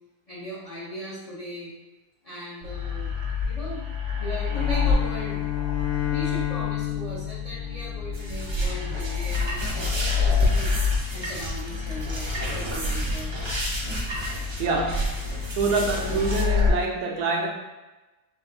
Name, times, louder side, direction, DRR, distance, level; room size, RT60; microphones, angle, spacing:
voice 1, 0.3-1.7 2.2-3.1 3.4-5.4 5.9-10.7 11.1-13.3 16.1-16.2, equal, 40° left, -7 dB, 0.6 m, -38 dB
sound 1, 2.6-16.7, left 6 dB, 65° right, 0.9 m, -28 dB
Bowed string instrument, 4.5-8.7, left 13 dB, 85° left, 2.0 m, -31 dB
sound 2, 8.1-16.4, right 2 dB, 45° right, 0.3 m, -31 dB
voice 2, 14.6-15.2 15.5-17.5, right 3 dB, 85° right, 0 dB, 1.2 m, -26 dB
4.6 x 2.5 x 2.6 m, 1.1 s
omnidirectional pair, 1.6 m